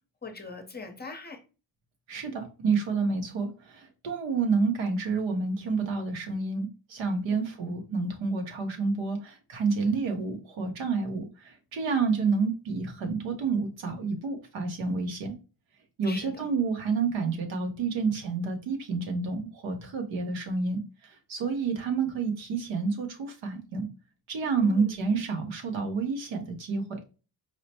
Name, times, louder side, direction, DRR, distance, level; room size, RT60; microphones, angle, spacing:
voice 1, 0.2-1.4 7.3-7.4 16.0-16.4 24.6-25.1, left 3 dB, 20° left, 4 dB, 0.8 m, -41 dB
voice 2, 2.1-15.3 16.0-23.9 24.3-27.0, right 4 dB, 80° right, 4 dB, 1.2 m, -29 dB
4.8 x 2.1 x 2.8 m, 0.33 s
cardioid pair, 110°, 46 cm